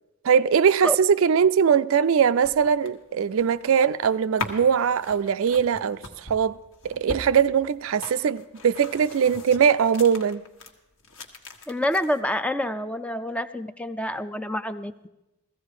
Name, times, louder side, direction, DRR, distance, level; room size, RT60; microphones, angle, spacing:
voice 1, 0.2-6.6 6.8-10.4, right 7 dB, 65° right, 0.4 m, -21 dB
sound 1, 2.2-10.7 11.0-12.2, left 2 dB, 70° left, 1.5 m, -40 dB
voice 2, 11.7-15.1, left 1 dB, 5° left, 0.4 m, -27 dB
15.0 x 15.0 x 4.8 m
head